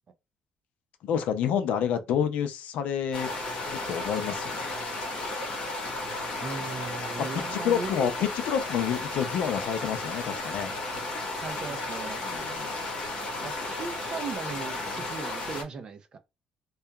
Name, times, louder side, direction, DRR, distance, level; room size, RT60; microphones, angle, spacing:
voice 1, 1.0-3.3 3.7-4.6 7.5-10.7 12.2-12.7, left 8 dB, 70° left, 0.5 m, -29 dB
sound 1, 3.1-15.6, left 2 dB, 40° left, 1.0 m, -34 dB
voice 2, 6.4-8.1 11.4-12.2 13.4-16.2, right 4 dB, 35° right, 0.4 m, -37 dB
2.8 x 2.3 x 2.2 m
cardioid pair, 145°, 2 cm